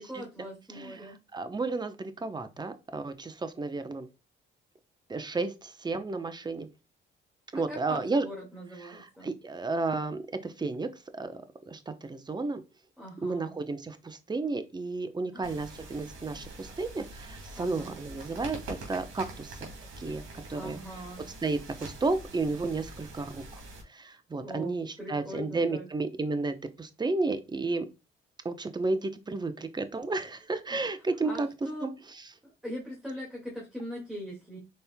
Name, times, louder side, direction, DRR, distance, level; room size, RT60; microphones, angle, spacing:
voice 1, 0.0-1.2 7.5-9.3 13.0-13.6 15.3-15.5 17.5-18.0 20.5-21.3 24.4-25.9 30.7-30.8 31.2-31.9 32.4-34.6, equal, 5° right, 2.0 m, -41 dB
voice 2, 0.8-4.1 5.1-6.7 7.5-8.3 8.8-10.9 11.2-12.6 13.2-19.7 20.0-20.2 20.5-20.8 21.4-23.4 23.9-27.9 28.4-31.5 31.8-31.9, right 3 dB, 20° right, 0.8 m, -32 dB
sound 1, 15.4-23.8, right 2 dB, 90° right, 2.4 m, -45 dB
5.4 x 4.3 x 2.2 m
cardioid pair, 90°, 20 cm